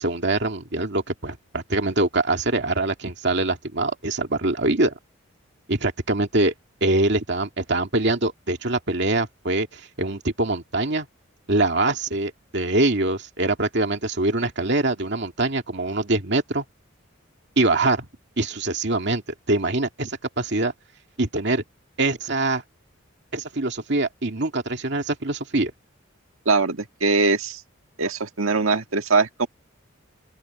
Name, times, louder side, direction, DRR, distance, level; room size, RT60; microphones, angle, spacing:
voice 1, 0.0-4.9 5.7-6.5 6.8-11.1 11.5-16.6 17.6-18.1 18.4-19.2 19.5-20.7 21.2-21.6 22.0-22.6 23.3-25.7, right 2 dB, 55° right, 2.4 m, -24 dB
voice 2, 26.5-27.6 28.0-29.5, right 3 dB, 85° right, 1.8 m, -21 dB
open air
head